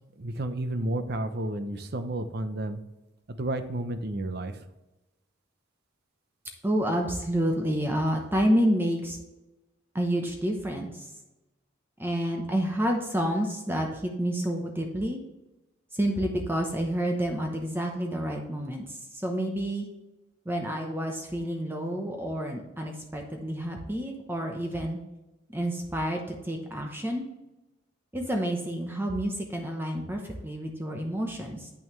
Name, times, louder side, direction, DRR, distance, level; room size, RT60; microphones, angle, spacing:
voice 1, 0.2-2.8 3.4-4.6, right 1 dB, 50° right, 10 dB, 0.6 m, -31 dB
voice 2, 6.6-9.2 9.9-11.1 12.0-15.2 15.9-19.9 20.5-25.0 25.5-27.3 28.1-31.7, equal, 10° right, 2 dB, 0.8 m, -29 dB
8.6 x 6.2 x 3.1 m, 1.0 s
head